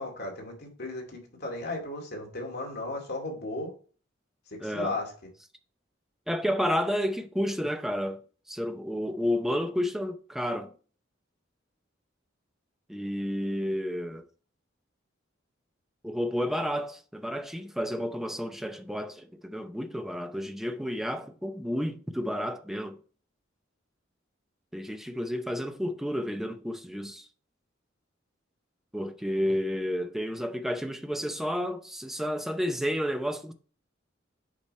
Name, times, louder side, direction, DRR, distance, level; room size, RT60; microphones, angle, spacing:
voice 1, 0.0-3.7 4.5-5.1, left 2 dB, 55° left, 2.3 m, -35 dB
voice 2, 4.6-4.9 6.3-8.2 8.5-10.7 12.9-14.2 16.0-23.0 24.7-27.3 28.9-33.5, equal, ahead, 0.6 m, -31 dB
8.4 x 5.0 x 3.2 m
head